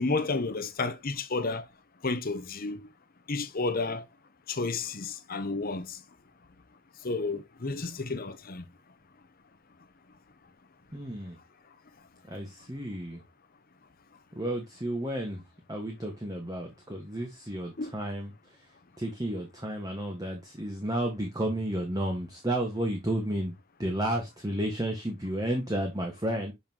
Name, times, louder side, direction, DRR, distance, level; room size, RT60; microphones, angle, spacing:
voice 1, 0.0-1.7 2.0-2.9 3.3-4.0 4.5-6.0 7.0-8.6 17.8-17.9, left 3 dB, 45° left, 0.8 m, -31 dB
voice 2, 10.9-11.4 12.3-13.2 14.3-15.4 15.7-18.6 19.0-26.5, right 1 dB, 20° right, 1.5 m, -32 dB
7.0 x 5.5 x 2.9 m
head